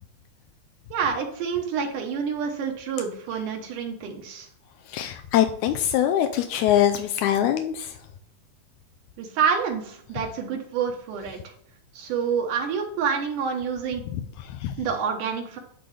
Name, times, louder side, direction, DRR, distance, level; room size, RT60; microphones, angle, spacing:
voice 1, 0.9-4.5 9.2-11.5 11.9-14.0 14.8-15.6, right 6 dB, 75° right, 3 dB, 2.5 m, -28 dB
voice 2, 4.9-8.0 14.1-14.7, left 11 dB, 80° left, 6 dB, 1.7 m, -23 dB
10.5 x 3.9 x 3.2 m, 0.65 s
omnidirectional pair, 3.8 m